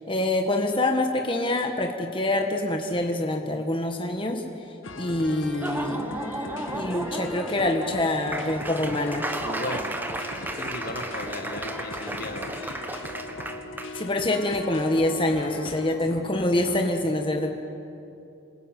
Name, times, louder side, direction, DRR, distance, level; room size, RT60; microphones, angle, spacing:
voice 1, 0.1-4.4 5.0-6.0 6.7-9.2 13.9-17.6, left 1 dB, 25° left, 3 dB, 1.6 m, -25 dB
sound 1, 4.8-16.9, left 2 dB, 85° left, 2.1 m, -39 dB
Laughter / Applause, 5.5-13.9, right 1 dB, 10° right, 1.4 m, -34 dB
voice 2, 9.4-10.0 10.3-12.6, left 1 dB, 50° left, 6 dB, 1.8 m, -36 dB
27.5 x 21.0 x 9.3 m, 2.7 s
head